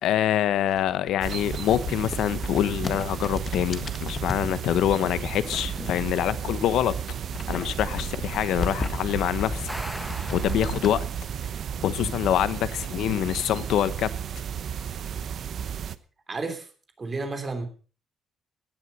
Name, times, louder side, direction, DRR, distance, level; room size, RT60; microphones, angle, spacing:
voice 1, 0.0-6.9 7.5-9.7 10.3-11.1 11.8-14.1, left 11 dB, 75° left, 1.0 m, -25 dB
sound 1, 0.6-4.5 5.2-6.5 6.8-10.9, left 4 dB, 25° left, 1.5 m, -36 dB
sound 2, 1.2-16.0, right 8 dB, 45° right, 0.9 m, -33 dB
sound 3, 9.5-11.5, equal, ahead, 1.3 m, -39 dB
voice 2, 16.3-16.7 17.0-17.7, right 3 dB, 25° right, 3.2 m, -31 dB
17.5 x 11.5 x 5.5 m
cardioid pair, 160°, 0 cm